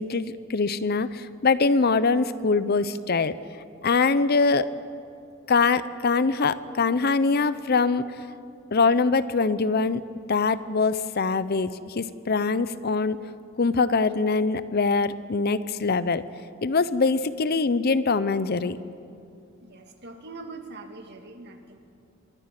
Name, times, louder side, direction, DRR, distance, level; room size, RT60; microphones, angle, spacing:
voice 1, 0.0-3.4 3.8-4.7 5.5-8.0 8.7-10.0 10.3-13.2 13.6-16.2 16.6-18.8, left 4 dB, 50° left, 15 dB, 0.7 m, -23 dB
voice 2, 19.6-21.8, right 3 dB, 55° right, 5 dB, 2.1 m, -42 dB
24.0 x 22.0 x 6.0 m, 2.5 s
head